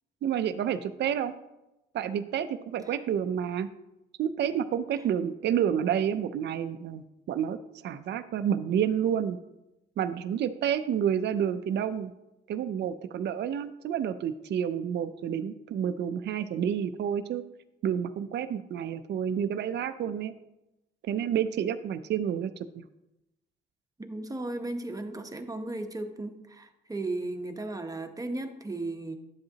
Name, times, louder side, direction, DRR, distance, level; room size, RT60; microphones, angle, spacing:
voice 1, 0.2-1.3 1.9-3.7 4.2-7.6 7.8-9.4 10.0-12.1 12.5-17.4 17.8-20.3 21.0-22.8, right 9 dB, 60° right, 11 dB, 0.5 m, -29 dB
voice 2, 24.0-29.2, right 2 dB, 15° right, 6 dB, 0.9 m, -35 dB
11.0 x 7.8 x 2.8 m, 0.94 s
cardioid pair, 90°, 20 cm